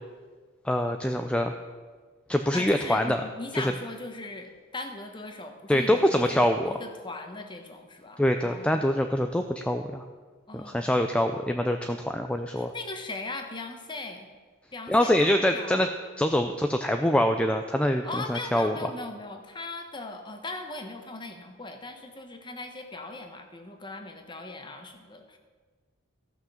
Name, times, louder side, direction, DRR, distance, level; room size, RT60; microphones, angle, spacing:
voice 1, 0.6-1.5 2.3-3.2 3.5-3.7 5.7-6.6 8.2-10.0 10.5-12.7 14.9-15.9 16.2-18.0 18.3-18.8, left 1 dB, 5° left, 5 dB, 0.4 m, -24 dB
voice 2, 2.5-8.8 10.5-10.9 12.5-14.3 14.7-15.9 18.0-25.4, left 2 dB, 20° left, 5 dB, 1.1 m, -39 dB
14.5 x 6.0 x 7.1 m, 1.5 s
head